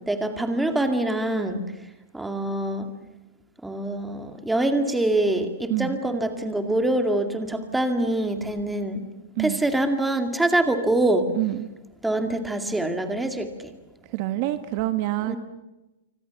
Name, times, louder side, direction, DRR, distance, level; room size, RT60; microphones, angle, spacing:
voice 1, 0.1-1.7 2.1-2.9 3.6-9.0 9.4-11.3 12.0-13.5 15.3-15.4, right 1 dB, 5° right, 6 dB, 2.2 m, -24 dB
voice 2, 11.3-11.7 14.1-15.3, right 16 dB, 40° right, 10 dB, 1.2 m, -26 dB
26.5 x 25.0 x 7.1 m, 1.0 s
hypercardioid pair, 160°, 0 cm